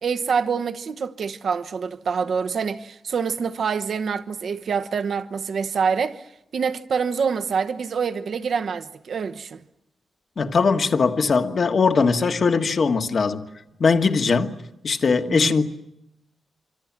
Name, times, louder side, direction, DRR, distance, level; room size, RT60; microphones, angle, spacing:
voice 1, 0.0-6.3 6.5-9.6 15.3-15.5, right 6 dB, 50° right, 1.1 m, -26 dB
voice 2, 10.4-13.4 13.8-14.5 14.8-15.6, left 4 dB, 40° left, 1.5 m, -20 dB
26.5 x 25.5 x 7.4 m
wide cardioid pair, 155°, 0 cm